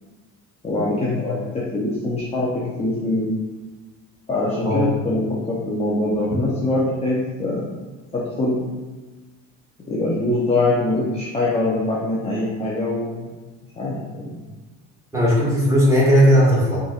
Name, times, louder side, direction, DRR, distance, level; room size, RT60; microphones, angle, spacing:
voice 1, 0.6-1.4 1.7-3.3 4.3-7.7 8.1-8.6 9.9-13.3 13.8-14.4, left 2 dB, 15° left, -6 dB, 0.6 m, -23 dB
voice 2, 15.1-16.8, equal, 10° right, -8 dB, 1.4 m, -16 dB
4.2 x 2.5 x 2.4 m, 1.2 s
supercardioid pair, 100°, 38 cm